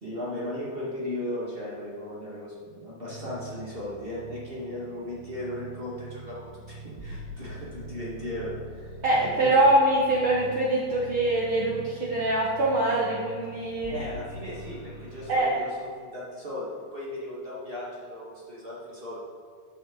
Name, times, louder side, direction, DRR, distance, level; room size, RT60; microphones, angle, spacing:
voice 1, 0.0-9.0 9.2-9.7 13.9-19.2, left 1 dB, 25° right, -6 dB, 1.1 m, -37 dB
sound 1, 3.0-15.3, right 2 dB, 55° right, 0.4 m, -43 dB
voice 2, 9.0-14.0 15.3-15.5, right 1 dB, 80° right, -4 dB, 1.1 m, -23 dB
13.5 x 7.1 x 4.0 m, 2.2 s
omnidirectional pair, 4.2 m